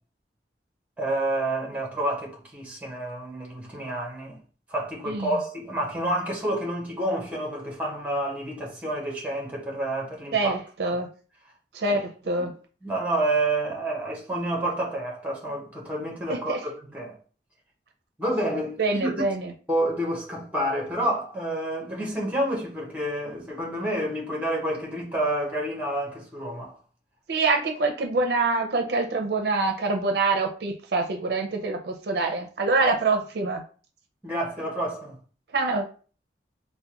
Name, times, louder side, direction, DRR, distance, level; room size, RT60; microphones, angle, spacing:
voice 1, 1.0-4.4 4.7-10.5 10.8-10.9 11.9-12.0 12.4-12.5 12.8-17.2 18.2-19.1 19.7-26.7 32.8-32.9 34.2-35.2, right 1 dB, 10° right, 0.8 m, -29 dB
voice 2, 5.1-5.4 10.3-11.1 11.7-12.5 16.3-16.6 18.8-19.5 27.3-33.6 35.5-35.9, right 3 dB, 65° right, 0.5 m, -25 dB
3.4 x 2.1 x 2.9 m
head